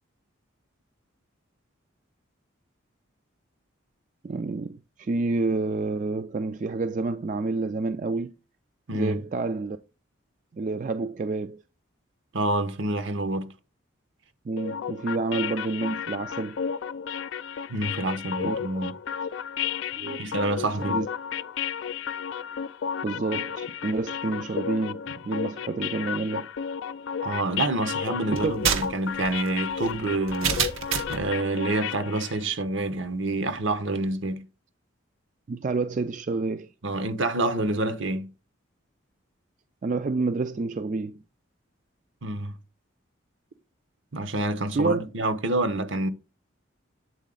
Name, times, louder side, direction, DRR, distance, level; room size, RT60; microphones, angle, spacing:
voice 1, 4.2-8.3 8.9-9.8 10.5-11.6 14.5-16.6 18.4-18.6 20.0-20.3 20.8-21.1 23.0-26.5 28.3-28.5 35.5-36.7 39.8-41.2 44.7-45.0, right 3 dB, 40° right, 0.3 m, -28 dB
voice 2, 12.3-13.5 17.7-18.9 20.2-21.0 27.2-30.6 31.1-34.4 36.8-38.3 42.2-42.6 44.1-46.1, right 2 dB, 70° right, 0.9 m, -27 dB
sound 1, 14.6-32.4, left 7 dB, 65° left, 0.4 m, -33 dB
sound 2, 28.4-31.3, right 6 dB, 90° right, 1.1 m, -28 dB
8.2 x 4.1 x 3.8 m
head